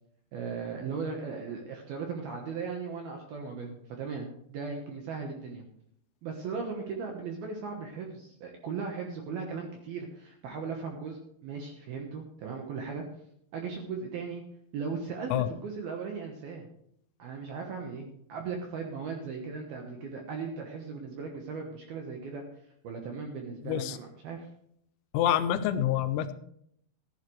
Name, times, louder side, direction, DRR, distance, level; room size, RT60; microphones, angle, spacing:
voice 1, 0.3-5.6 6.2-13.0 13.5-14.4 14.7-16.7 17.2-22.4 22.8-24.5, right 5 dB, 70° right, 2 dB, 2.4 m, -37 dB
voice 2, 23.6-24.0 25.1-26.3, left 11 dB, 90° left, 10 dB, 3.4 m, -27 dB
15.0 x 11.5 x 3.3 m, 0.70 s
omnidirectional pair, 6.0 m